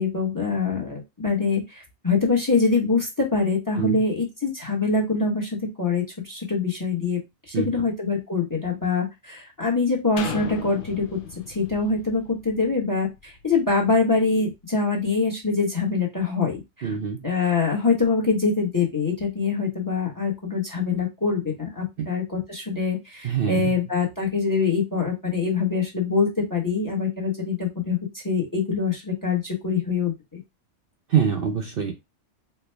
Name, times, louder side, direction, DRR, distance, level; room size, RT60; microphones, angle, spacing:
voice 1, 0.0-7.2 7.5-11.2 11.5-16.9 17.2-30.4, left 4 dB, 20° left, 0 dB, 0.9 m, -24 dB
sound 1, 10.2-13.9 14.5-14.6, left 6 dB, 60° left, 0.6 m, -37 dB
voice 2, 16.8-17.2 22.0-22.1 23.2-23.8 31.1-31.9, right 7 dB, 55° right, 3 dB, 0.8 m, -24 dB
4.4 x 2.2 x 3.2 m, 0.22 s
omnidirectional pair, 1.2 m